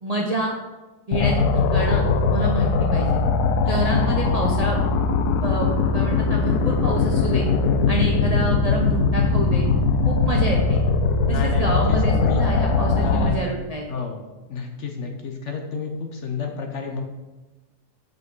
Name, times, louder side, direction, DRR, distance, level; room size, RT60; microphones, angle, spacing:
voice 1, 0.0-0.6 1.1-3.2 3.7-4.8 5.4-7.5 7.9-9.7 10.0-10.8 11.3-13.8, right 1 dB, 40° right, -2 dB, 0.5 m, -28 dB
sound 1, 1.1-13.3, left 4 dB, 80° left, 1.1 m, -20 dB
voice 2, 3.6-4.1 8.0-8.4 10.4-10.7 11.3-12.4 13.0-13.5 13.9-14.2 14.5-17.0, left 5 dB, 55° left, 3 dB, 0.9 m, -30 dB
7.8 x 5.3 x 3.8 m, 1.1 s
omnidirectional pair, 1.7 m